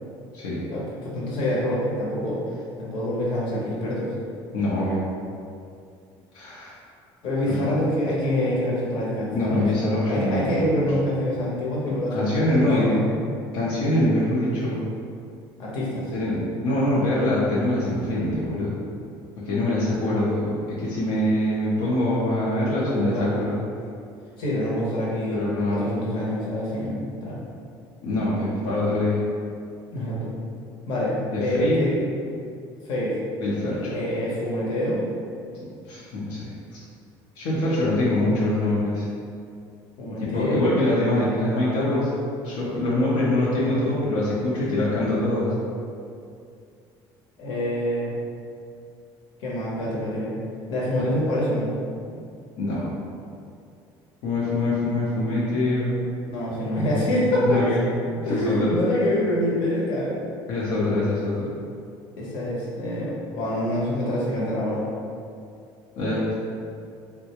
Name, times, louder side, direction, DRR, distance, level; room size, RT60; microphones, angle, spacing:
voice 1, 0.7-2.4 2.8-4.1 7.2-9.7 10.1-13.0 15.6-16.1 22.8-23.4 24.4-27.4 29.9-30.3 30.9-32.0 32.8-33.2 33.9-35.0 40.0-40.8 47.4-48.1 49.4-50.4 50.7-51.7 56.2-57.6 58.2-60.2 62.2-64.9, left 1 dB, 60° left, -6 dB, 0.9 m, -26 dB
voice 2, 4.5-5.0 6.3-6.8 7.4-7.7 9.3-10.9 12.1-13.0 13.5-14.8 16.1-18.8 19.4-23.6 25.3-26.1 28.0-29.2 31.3-31.8 33.4-33.9 35.8-36.8 37.4-39.1 40.2-42.1 42.4-45.5 52.6-52.9 54.2-55.9 57.4-58.7 60.5-61.5 66.0-66.3, left 1 dB, 80° left, -8 dB, 0.7 m, -24 dB
3.6 x 2.2 x 2.9 m, 2.4 s
cardioid pair, 150°, 9 cm